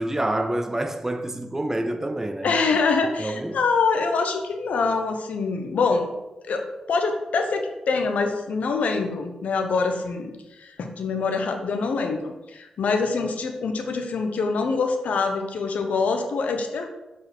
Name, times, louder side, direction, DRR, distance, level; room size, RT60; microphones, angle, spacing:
voice 1, 0.0-2.5 3.2-3.6, right 1 dB, 20° right, 0.7 m, -27 dB
voice 2, 2.4-6.1 6.5-6.6 6.9-10.3 10.6-16.9, left 4 dB, 80° left, 0.9 m, -25 dB
7.3 x 4.7 x 4.3 m
cardioid pair, 75°, 2 cm